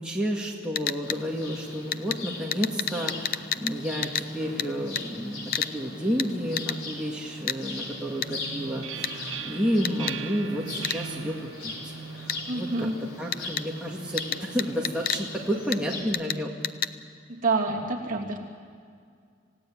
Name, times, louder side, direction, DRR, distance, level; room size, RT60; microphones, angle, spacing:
voice 1, 0.0-12.9 13.2-16.5, equal, 5° right, -3 dB, 2.0 m, -31 dB
sound 1, 0.8-1.2 1.9-2.2 2.5-3.8 4.0-4.3 4.6-4.7 5.0-5.1 5.5-5.7 6.2-6.3 6.6-6.8 7.5-7.6 8.2-8.3 9.0-9.1 9.8-10.2 10.8-11.0 12.3-12.4 13.3-13.7 14.2-15.2 15.7-15.8 16.1-16.4 16.6-16.9, left 9 dB, 50° left, 0.7 m, -29 dB
sound 2, 1.0-16.0, left 2 dB, 85° left, 4.1 m, -40 dB
sound 3, 8.2-13.8, right 5 dB, 75° right, 1.5 m, -40 dB
voice 2, 12.5-13.0 17.3-18.4, right 3 dB, 40° right, -1 dB, 2.9 m, -27 dB
27.5 x 17.0 x 9.0 m, 2.2 s
head